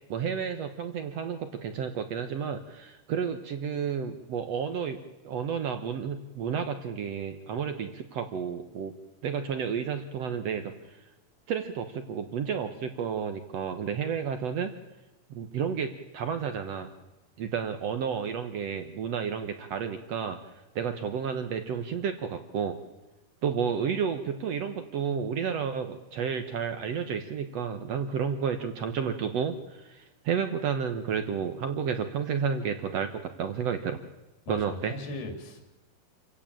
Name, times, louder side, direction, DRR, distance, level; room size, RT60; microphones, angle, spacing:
voice 1, 0.1-5.0 5.2-8.9 9.2-11.0 11.5-14.7 15.3-16.9 17.4-20.4 20.7-22.8 23.4-34.0 34.5-34.9, right 7 dB, 70° right, 8 dB, 1.6 m, -31 dB
voice 2, 34.5-35.7, left 2 dB, 75° left, 5 dB, 4.9 m, -39 dB
27.5 x 16.0 x 9.0 m, 1.0 s
omnidirectional pair, 4.5 m